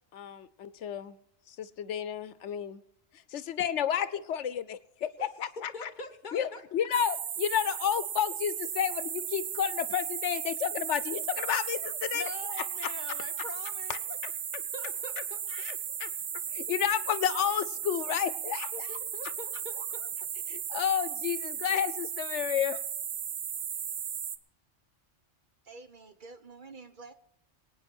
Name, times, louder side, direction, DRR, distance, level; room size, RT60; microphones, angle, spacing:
voice 1, 0.1-1.2 1.5-2.8 3.1-5.9 6.3-12.2 12.6-12.9 13.9-14.0 15.5-16.1 16.5-18.9 20.5-22.8, left 9 dB, 80° left, 15 dB, 1.0 m, -31 dB
voice 2, 5.7-6.6 6.9-7.0 12.1-14.2 14.6-15.4 18.7-20.1, left 3 dB, 45° left, 5 dB, 1.3 m, -44 dB
sound 1, 6.9-24.4, right 8 dB, 70° right, 1.1 m, -36 dB
voice 3, 25.6-27.1, right 3 dB, 45° right, 8 dB, 1.0 m, -48 dB
25.5 x 9.3 x 4.4 m, 0.79 s
omnidirectional pair, 1.2 m